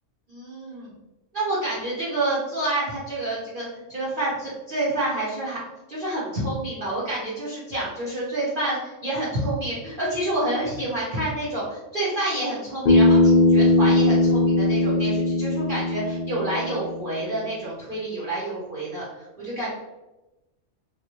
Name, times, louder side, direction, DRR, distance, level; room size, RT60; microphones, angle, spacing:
voice 1, 0.3-0.9 1.3-5.6 5.9-19.1 19.4-19.7, right 1 dB, 45° right, -10 dB, 0.9 m, -28 dB
Bass guitar, 12.9-17.2, left 2 dB, 75° left, 0.4 m, -19 dB
3.1 x 2.4 x 2.9 m, 1.0 s
omnidirectional pair, 1.4 m